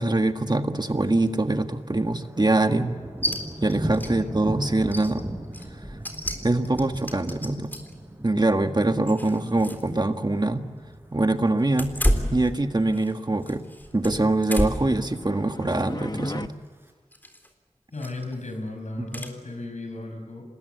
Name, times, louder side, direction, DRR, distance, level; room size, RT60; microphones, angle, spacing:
voice 1, 0.0-3.0 3.6-5.2 6.4-7.7 8.2-10.6 11.1-11.9 12.3-13.7 13.9-16.5 19.1-19.3, right 2 dB, 35° right, 7 dB, 1.6 m, -23 dB
Thunder, 0.8-1.3 1.6-12.0 12.4-12.7 13.2-13.6 13.9-14.0 14.1-14.2 14.6-15.2 16.0-16.9, right 1 dB, 20° right, 5.5 m, -38 dB
sound 1, 3.2-3.4 3.7-4.1 4.4-4.5 4.8-8.0 8.5-9.9 10.2-10.3 11.7-13.1 13.4-15.0 15.4-15.8 17.1-17.5 18.0-18.3 19.1-19.3, equal, 15° left, 3.8 m, -30 dB
sound 2, 14.7-16.5, left 2 dB, 35° left, 1.0 m, -37 dB
voice 2, 17.9-20.4, left 2 dB, 75° left, 4 dB, 6.1 m, -35 dB
26.5 x 20.5 x 8.2 m, 1.5 s
wide cardioid pair, 50°, 12 cm